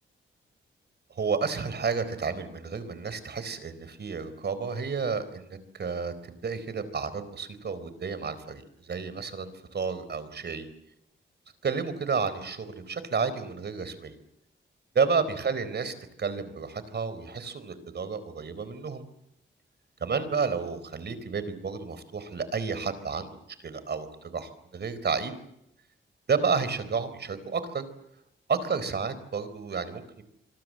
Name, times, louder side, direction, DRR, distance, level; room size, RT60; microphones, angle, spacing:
voice 1, 1.1-10.7 11.6-14.1 14.9-19.0 20.0-23.3 23.6-25.4 26.3-27.8 28.5-30.2, right 5 dB, 55° right, 14 dB, 4.2 m, -31 dB
26.5 x 24.5 x 7.7 m, 0.81 s
cardioid pair, 75°, 20 cm